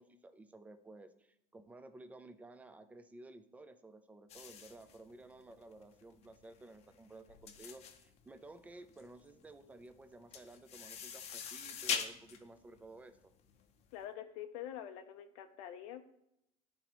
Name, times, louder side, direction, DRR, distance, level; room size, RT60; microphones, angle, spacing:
voice 1, 0.0-13.3, right 2 dB, 10° right, 10 dB, 0.4 m, -54 dB
sound 1, 4.3-13.9, left 7 dB, 40° left, 0.6 m, -44 dB
voice 2, 13.9-16.0, left 10 dB, 80° left, 6 dB, 0.6 m, -46 dB
11.5 x 4.0 x 3.0 m, 0.80 s
cardioid pair, 135°, 17 cm